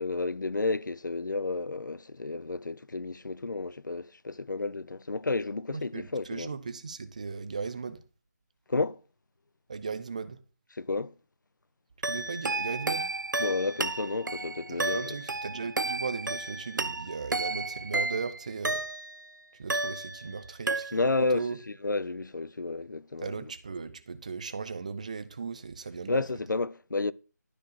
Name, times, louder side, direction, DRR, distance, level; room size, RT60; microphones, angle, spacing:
voice 1, 0.0-6.5 8.7-9.0 10.7-11.1 13.4-15.0 20.9-23.5 26.1-27.1, left 3 dB, 85° left, 0.4 m, -31 dB
voice 2, 5.7-8.0 9.7-10.4 12.0-13.1 14.7-18.8 19.6-21.1 21.3-21.6 23.2-26.2, right 5 dB, 25° right, 0.4 m, -37 dB
sound 1, 12.0-19.3 19.7-20.4 20.7-21.3, right 2 dB, 85° right, 0.5 m, -32 dB
11.5 x 4.6 x 2.9 m
figure-of-eight pair, 160°, 10 cm